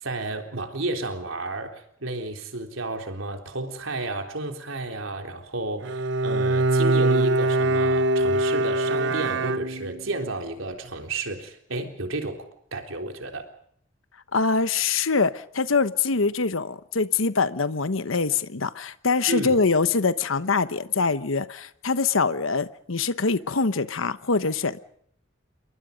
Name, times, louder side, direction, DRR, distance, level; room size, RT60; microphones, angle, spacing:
voice 1, 0.0-13.5 19.3-19.6, right 2 dB, 85° right, 4 dB, 3.7 m, -32 dB
Bowed string instrument, 5.8-10.2, right 2 dB, 65° right, 0.8 m, -23 dB
voice 2, 14.3-24.8, left 4 dB, 85° left, 13 dB, 1.1 m, -24 dB
28.5 x 23.0 x 5.3 m, 0.67 s
head